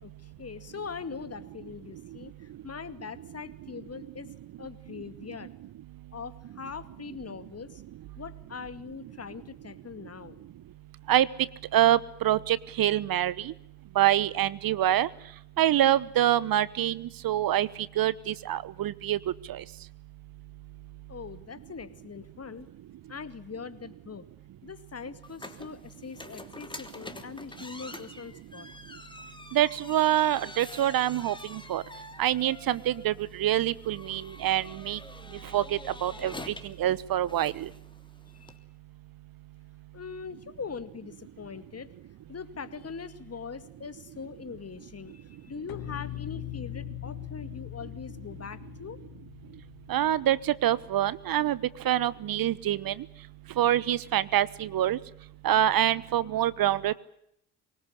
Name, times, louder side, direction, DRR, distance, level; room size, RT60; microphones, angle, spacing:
voice 1, 0.0-4.3 4.6-5.5 6.1-7.8 8.2-10.4 21.1-22.7 23.1-24.3 24.6-28.7 36.2-36.3 38.3-38.5 39.9-41.9 42.3-49.0, left 6 dB, 35° left, 13 dB, 2.3 m, -42 dB
voice 2, 11.7-13.5 14.0-15.1 15.6-17.7 18.0-19.2 19.5-19.6 29.5-31.3 31.7-31.8 32.2-33.1 33.4-35.0 35.5-35.6 36.0-36.3 36.8-37.7 49.9-51.6 51.8-52.9 53.6-55.0 55.4-56.9, right 12 dB, 55° right, 20 dB, 1.1 m, -25 dB
sound 1, 25.2-38.6, left 2 dB, 10° left, 3.3 m, -47 dB
sound 2, 45.7-50.9, left 18 dB, 65° left, 1.4 m, -41 dB
24.5 x 19.5 x 9.9 m, 0.74 s
hypercardioid pair, 50°, 43 cm